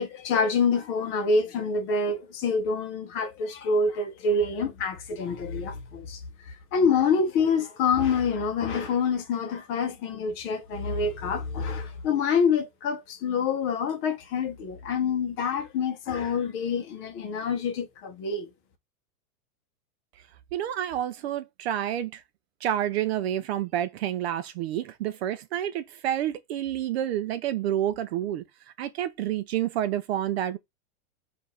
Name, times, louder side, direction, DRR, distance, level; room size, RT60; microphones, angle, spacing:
voice 1, 0.0-18.5, left 4 dB, 30° left, 0.7 m, -26 dB
voice 2, 20.5-22.2 22.6-28.4 28.8-30.6, right 11 dB, 45° right, 0.4 m, -29 dB
4.4 x 2.6 x 4.1 m
supercardioid pair, 155°, 45 cm